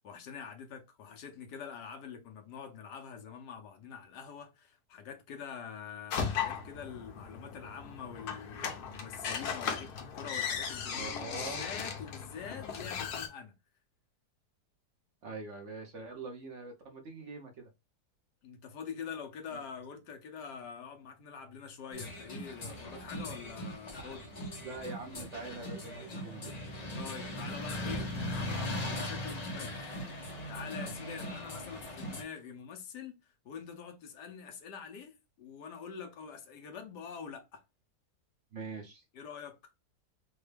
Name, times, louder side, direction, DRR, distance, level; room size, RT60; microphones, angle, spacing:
voice 1, 0.0-13.5 18.4-24.3 27.0-29.9 30.5-33.2 33.4-37.6 39.1-39.6, left 6 dB, 90° left, 1.4 m, -45 dB
sound 1, 6.1-13.3, left 7 dB, 75° left, 1.3 m, -37 dB
voice 2, 10.9-11.8 15.2-17.7 19.5-19.6 24.6-26.6 38.5-39.0, right 3 dB, 50° right, 1.0 m, -44 dB
sound 2, 21.9-32.2, left 1 dB, 40° left, 0.5 m, -39 dB
4.3 x 2.3 x 3.3 m
omnidirectional pair, 1.7 m